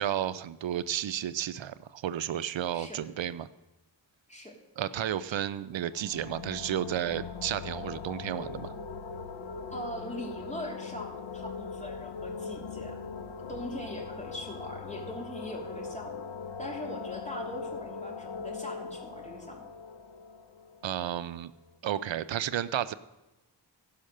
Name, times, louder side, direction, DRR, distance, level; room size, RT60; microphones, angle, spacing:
voice 1, 0.0-3.5 4.8-8.7 20.8-21.5 21.8-22.9, right 10 dB, 85° right, 15 dB, 0.5 m, -32 dB
sound 1, 5.9-21.4, left 5 dB, 80° left, 0.7 m, -40 dB
voice 2, 9.7-13.0 13.5-16.3 16.6-19.7, equal, 15° left, -1 dB, 2.7 m, -41 dB
15.5 x 5.7 x 6.5 m, 1.0 s
wide cardioid pair, 65°, 44 cm